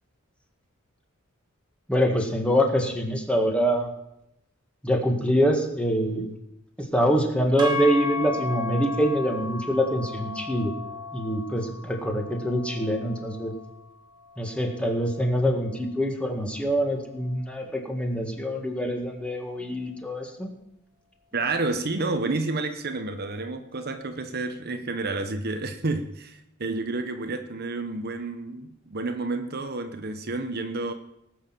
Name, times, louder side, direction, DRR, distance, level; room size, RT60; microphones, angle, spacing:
voice 1, 1.9-3.9 4.8-6.3 6.9-10.7 11.1-13.5 14.4-20.5, equal, 5° left, 1.9 m, -25 dB
sound 1, 7.6-15.8, left 3 dB, 20° right, 2.1 m, -35 dB
voice 2, 21.3-30.9, right 3 dB, 50° right, 1.0 m, -30 dB
19.0 x 6.5 x 7.6 m
head